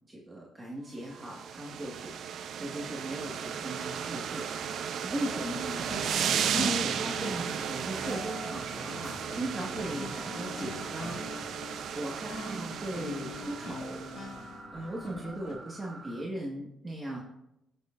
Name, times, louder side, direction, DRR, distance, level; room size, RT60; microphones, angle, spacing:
voice 1, 0.1-2.1 2.6-5.8 6.5-11.2 11.6-14.0 14.7-17.2, right 1 dB, 15° right, -3 dB, 1.7 m, -38 dB
sound 1, 1.1-14.3, right 8 dB, 70° right, 0.6 m, -35 dB
sound 2, 3.2-16.2, right 3 dB, 35° right, 1.2 m, -48 dB
sound 3, 5.8-15.5, left 2 dB, 70° left, 3.4 m, -43 dB
17.5 x 6.6 x 2.5 m, 0.86 s
cardioid pair, 90°, 0 cm